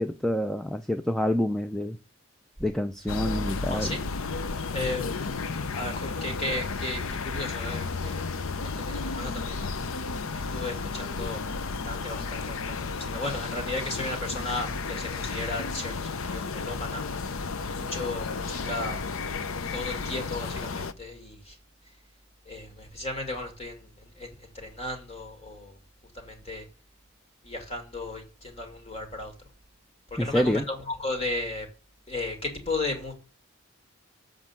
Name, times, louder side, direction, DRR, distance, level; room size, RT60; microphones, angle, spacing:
voice 1, 0.0-2.0 2.6-4.0 30.2-30.6, left 1 dB, ahead, 0.3 m, -27 dB
sound 1, 3.1-20.9, left 4 dB, 70° left, 0.6 m, -33 dB
voice 2, 4.7-5.3 5.7-8.2 8.6-9.7 10.3-11.4 11.7-17.0 17.8-19.0 19.7-21.6 22.5-25.7 26.1-26.7 27.4-29.3 30.1-31.7 32.1-33.1, left 2 dB, 30° left, 2.3 m, -35 dB
7.6 x 5.2 x 7.2 m
head